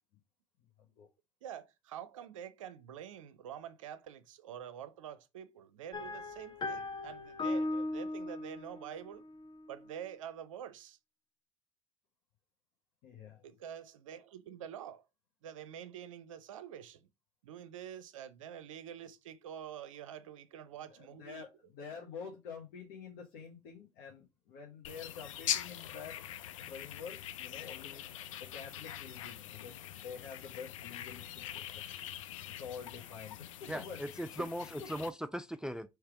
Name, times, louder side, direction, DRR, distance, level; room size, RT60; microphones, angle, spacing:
voice 1, 0.6-1.1 13.0-13.5 20.9-26.2 26.7-28.0 28.4-31.8 32.5-34.0 34.4-34.5 34.8-34.9, left 6 dB, 70° left, 1.1 m, -48 dB
voice 2, 1.4-9.3 9.7-11.0 13.4-15.1 15.4-17.1 17.4-21.5, right 9 dB, 85° right, 0.5 m, -47 dB
sound 1, 5.9-9.8, left 2 dB, 30° left, 0.8 m, -38 dB
sound 2, 24.8-35.1, left 11 dB, 85° left, 0.4 m, -43 dB
voice 3, 33.7-35.9, equal, 5° right, 0.4 m, -39 dB
3.3 x 3.1 x 4.7 m
hypercardioid pair, 60°, 16 cm